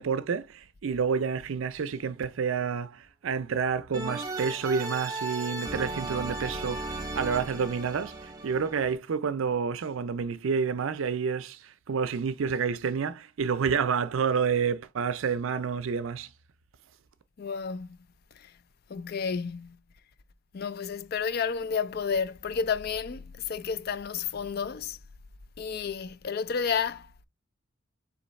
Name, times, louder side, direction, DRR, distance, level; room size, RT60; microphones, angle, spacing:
voice 1, 0.0-11.6 11.9-16.3, right 6 dB, 70° right, 0.4 m, -29 dB
sound 1, 3.9-8.9, right 2 dB, 15° right, 0.8 m, -36 dB
voice 2, 17.4-18.0 18.4-18.5 18.9-19.8 20.5-25.0 25.6-27.2, left 6 dB, 45° left, 0.4 m, -31 dB
3.8 x 3.2 x 3.9 m
head